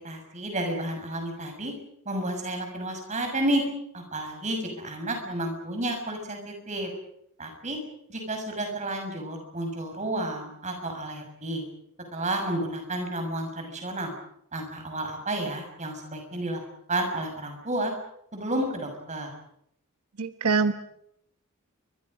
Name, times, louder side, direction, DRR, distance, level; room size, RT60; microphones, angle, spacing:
voice 1, 0.0-1.7 2.0-3.6 3.9-6.9 7.4-7.8 8.1-11.6 12.1-14.1 14.5-16.6 16.9-17.9 18.3-19.3, right 1 dB, 30° right, 4 dB, 6.3 m, -31 dB
voice 2, 20.2-20.7, right 4 dB, 90° right, 9 dB, 1.2 m, -23 dB
29.5 x 24.5 x 5.3 m, 0.73 s
head